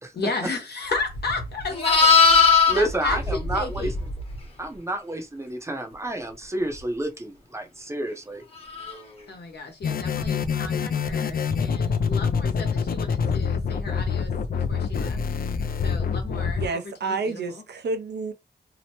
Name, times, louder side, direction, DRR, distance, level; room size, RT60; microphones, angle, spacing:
voice 1, 0.2-4.0 9.3-15.2 15.8-17.6, left 4 dB, 75° left, 1.0 m, -34 dB
Livestock farm animals working animals, 1.1-4.4 8.7-9.0, left 5 dB, 35° left, 1.0 m, -20 dB
voice 2, 2.7-3.9 4.6-8.4, right 1 dB, 15° right, 0.6 m, -29 dB
sound 1, 9.8-16.7, left 6 dB, 60° left, 0.4 m, -26 dB
voice 3, 16.5-18.3, right 4 dB, 80° right, 0.6 m, -29 dB
2.8 x 2.1 x 2.9 m
wide cardioid pair, 105°, 17 cm